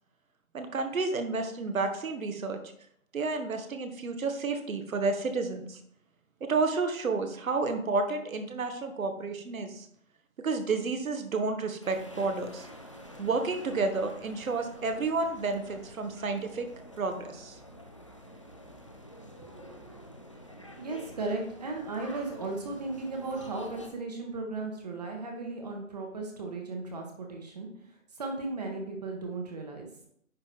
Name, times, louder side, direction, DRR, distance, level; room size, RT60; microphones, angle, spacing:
voice 1, 0.5-2.6 3.1-5.8 6.4-9.9 10.4-12.7 13.2-16.7 17.0-17.6, right 3 dB, 75° right, 6 dB, 1.4 m, -31 dB
sound 1, 11.8-23.9, equal, 25° left, 0.5 m, -48 dB
voice 2, 19.4-20.0 20.8-27.7 28.2-29.9, right 3 dB, 30° right, 1 dB, 1.2 m, -36 dB
9.9 x 3.7 x 4.5 m, 0.69 s
hypercardioid pair, 170°, 41 cm